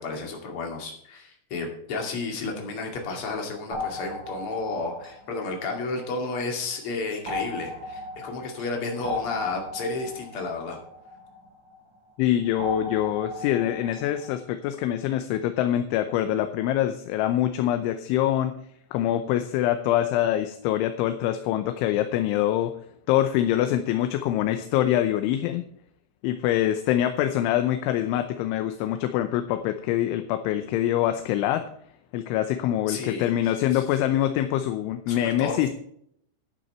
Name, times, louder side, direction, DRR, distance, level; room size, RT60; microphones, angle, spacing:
voice 1, 0.0-10.8 32.9-33.8 35.1-35.6, left 3 dB, 40° left, 1 dB, 2.1 m, -32 dB
sound 1, 3.7-6.5 7.3-11.8 12.6-14.4, left 2 dB, 25° right, 4.4 m, -37 dB
voice 2, 12.2-18.6 18.9-22.8 23.1-25.6 26.2-31.7 32.1-35.7, left 12 dB, 80° left, 8 dB, 3.1 m, -24 dB
11.5 x 9.5 x 4.4 m, 0.68 s
omnidirectional pair, 5.7 m